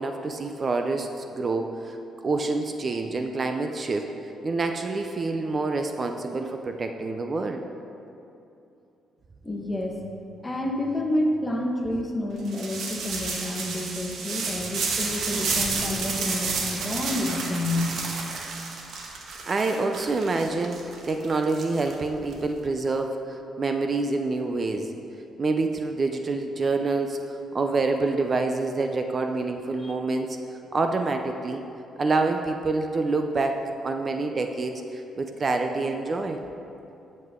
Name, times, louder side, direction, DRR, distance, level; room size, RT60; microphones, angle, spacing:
voice 1, 0.0-2.0 2.2-4.1 4.4-7.6 19.4-24.9 25.4-30.4 30.7-31.6 32.0-33.6 33.8-36.4, right 3 dB, 40° right, 5 dB, 0.6 m, -27 dB
voice 2, 9.4-9.9 10.4-18.0 29.8-29.9, left 1 dB, 20° left, 1 dB, 1.4 m, -29 dB
sound 1, 12.4-22.3, right 4 dB, 70° right, 1.5 m, -31 dB
11.0 x 7.7 x 3.7 m, 2.8 s
cardioid pair, 90°, 0 cm